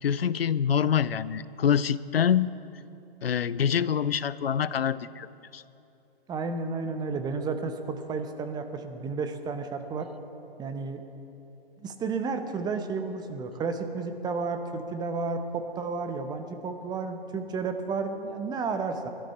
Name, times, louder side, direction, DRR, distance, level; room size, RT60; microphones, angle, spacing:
voice 1, 0.0-2.5 3.2-5.3 5.5-5.6, left 8 dB, 75° left, 18 dB, 0.6 m, -25 dB
voice 2, 6.3-10.1 10.6-11.0 11.8-19.1, right 4 dB, 15° right, 7 dB, 0.9 m, -32 dB
23.0 x 12.5 x 4.4 m, 2.9 s
figure-of-eight pair, 120°, 30 cm